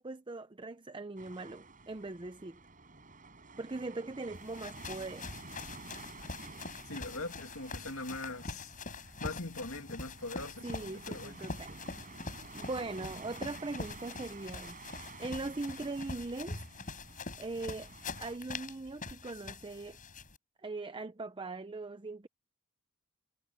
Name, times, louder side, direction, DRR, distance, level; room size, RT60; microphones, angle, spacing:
voice 1, 0.0-2.6 3.6-5.3 10.6-11.8 12.5-14.8 15.2-16.6 17.4-17.9 18.2-20.0 20.6-22.3, right 3 dB, 20° right, 0.6 m, -40 dB
sound 1, 1.2-18.4, right 3 dB, 40° right, 6.0 m, -52 dB
sound 2, 4.3-20.4, left 3 dB, 40° left, 5.8 m, -44 dB
voice 2, 6.9-11.4, left 2 dB, 65° left, 2.6 m, -42 dB
head